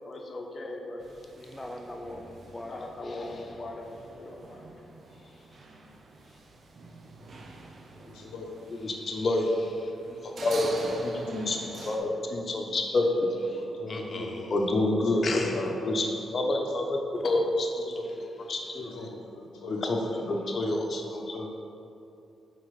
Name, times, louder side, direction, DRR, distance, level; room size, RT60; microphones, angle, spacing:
voice 1, 0.1-1.1 2.5-4.7 8.7-9.9 10.2-10.7 11.0-19.1 19.6-21.5, left 2 dB, 50° left, 2 dB, 1.0 m, -30 dB
sound 1, 1.0-12.0, right 2 dB, 60° right, 0.9 m, -45 dB
voice 2, 1.3-3.9, left 1 dB, 15° left, 3 dB, 0.6 m, -43 dB
voice 3, 8.0-8.5 9.4-9.7 10.0-10.5 10.9-12.1 12.4-12.5 13.6-15.1 15.4-16.0 16.3-16.5 17.0-17.1 17.8-18.2 18.7-19.9 20.2-20.5, left 3 dB, 90° left, -1 dB, 1.1 m, -42 dB
6.0 x 4.4 x 5.8 m, 2.7 s
supercardioid pair, 50°, 0 cm